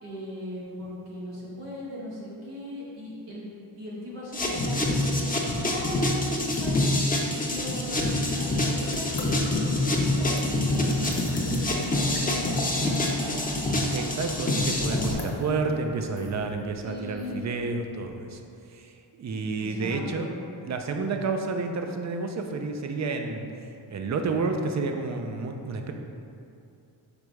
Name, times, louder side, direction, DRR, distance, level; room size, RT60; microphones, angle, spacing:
voice 1, 0.0-3.4 3.7-6.9 7.4-13.5 16.8-17.5 19.6-20.4, equal, 85° right, -7 dB, 1.3 m, -38 dB
sound 1, 4.3-15.1, left 1 dB, 15° left, 0.7 m, -26 dB
sound 2, 6.3-18.1, left 2 dB, 55° left, 0.9 m, -41 dB
voice 2, 13.9-18.4 18.7-20.3 20.6-23.5 23.9-25.9, right 3 dB, 35° right, 4 dB, 0.5 m, -30 dB
5.1 x 3.3 x 3.1 m, 2.6 s
cardioid pair, 55°, 49 cm